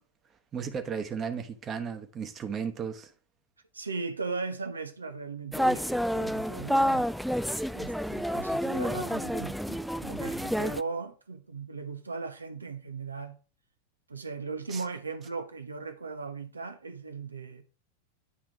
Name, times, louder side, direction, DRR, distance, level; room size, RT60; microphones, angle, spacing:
voice 1, 0.5-3.1 14.7-14.8, right 6 dB, 25° right, 1.1 m, -35 dB
voice 2, 3.7-7.0 7.7-13.4 14.1-17.6, right 4 dB, 75° right, 0.7 m, -38 dB
sound 1, 5.5-10.8, equal, ahead, 0.3 m, -29 dB
9.9 x 3.6 x 4.7 m
figure-of-eight pair, 90°, 0 cm